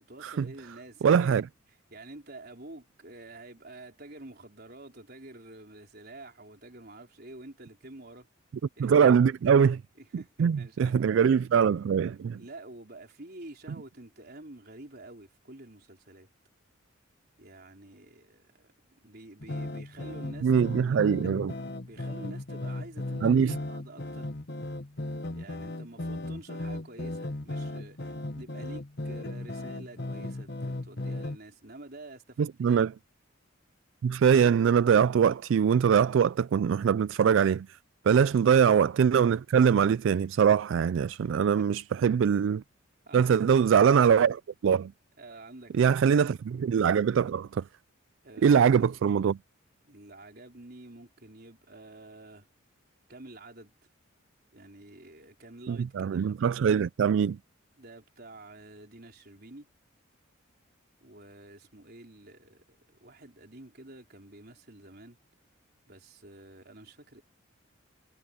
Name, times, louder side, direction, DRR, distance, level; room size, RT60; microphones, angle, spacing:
voice 1, 0.1-1.4 1.9-8.3 8.8-9.1 10.0-11.2 12.3-16.3 17.4-21.1 21.8-24.3 25.3-32.8 41.6-42.1 43.0-43.4 45.2-46.3 48.2-49.0 49.8-52.5 53.1-53.7 54.5-56.5 57.7-59.7 61.0-65.2 65.9-67.2, right 2 dB, 50° right, 4.4 m, -48 dB
voice 2, 1.0-1.5 8.8-9.8 10.4-12.4 20.4-21.5 23.2-23.6 32.4-32.9 34.0-37.7 38.0-42.6 43.1-44.9 45.7-47.6 48.4-49.4 55.7-57.4, right 7 dB, 65° right, 0.3 m, -23 dB
sound 1, 19.4-31.4, left 2 dB, 55° left, 1.4 m, -36 dB
head